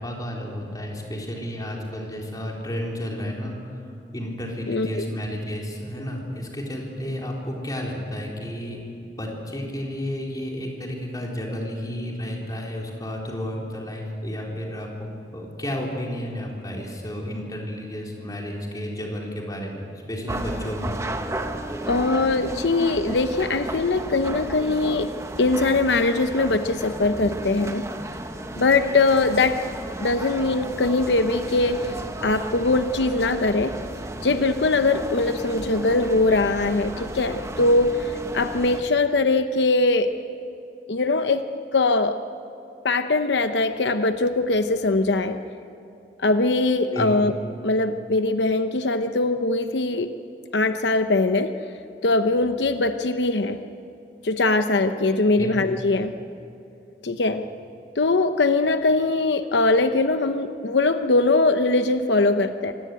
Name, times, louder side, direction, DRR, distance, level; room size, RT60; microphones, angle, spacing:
voice 1, 0.0-8.8 9.2-15.1 15.3-20.9 46.9-47.1 55.4-55.6, equal, 20° left, -1 dB, 4.1 m, -32 dB
voice 2, 4.7-5.1 21.9-25.1 25.4-27.9 28.6-29.6 30.0-31.9 32.2-33.7 34.2-40.1 40.9-41.4 41.7-42.2 42.8-45.4 46.2-47.3 47.6-50.1 50.5-51.5 52.0-53.6 54.2-56.1 57.0-57.4 58.0-62.7, left 3 dB, 85° left, 8 dB, 0.8 m, -21 dB
sound 1, 20.3-38.8, right 1 dB, 15° right, 1.3 m, -34 dB
25.5 x 18.0 x 9.3 m, 2.7 s
head